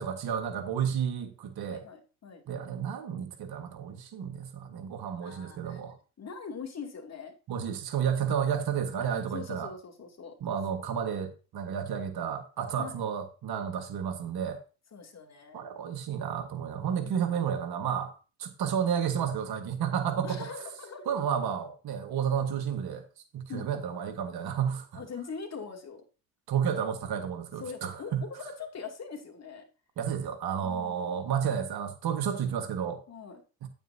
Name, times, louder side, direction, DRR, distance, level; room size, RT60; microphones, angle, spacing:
voice 1, 0.0-1.8 2.5-6.0 7.5-9.7 10.4-14.6 15.5-18.1 18.4-20.5 21.1-23.0 23.3-25.0 26.5-28.2 30.0-33.0 33.6-33.7, right 8 dB, 60° right, 1.6 m, -31 dB
voice 2, 1.7-2.6 5.2-5.8 6.2-7.3 8.2-8.4 9.1-10.3 10.8-10.9 12.7-13.0 14.9-15.6 16.9-17.3 20.2-21.1 23.5-23.7 24.9-26.0 27.6-29.6 30.6-31.2 33.1-33.4, left 5 dB, 35° left, 2.6 m, -42 dB
9.1 x 9.0 x 2.7 m
supercardioid pair, 75°, 43 cm